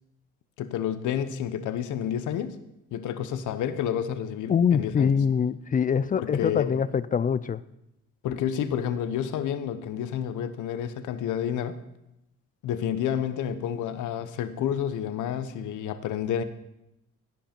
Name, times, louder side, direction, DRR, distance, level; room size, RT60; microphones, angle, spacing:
voice 1, 0.6-2.6 2.9-5.1 6.2-6.7 8.2-11.8 12.6-16.4, left 9 dB, 80° left, 11 dB, 0.8 m, -30 dB
voice 2, 4.5-7.6, left 7 dB, 30° left, 17 dB, 0.4 m, -24 dB
15.5 x 5.5 x 4.3 m, 0.86 s
cardioid pair, 90°, 30 cm